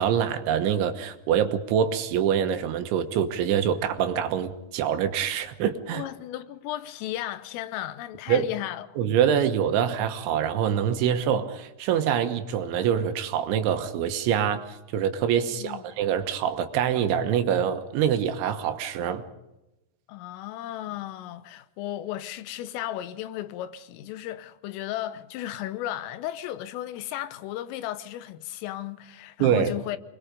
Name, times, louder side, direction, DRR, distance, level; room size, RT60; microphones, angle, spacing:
voice 1, 0.0-6.0 8.3-8.5 9.0-19.2 29.4-29.7, right 8 dB, 75° right, 3.4 m, -25 dB
voice 2, 5.9-8.9 15.5-15.9 20.1-30.0, left 13 dB, 85° left, 3.6 m, -35 dB
27.0 x 21.5 x 5.3 m
omnidirectional pair, 5.7 m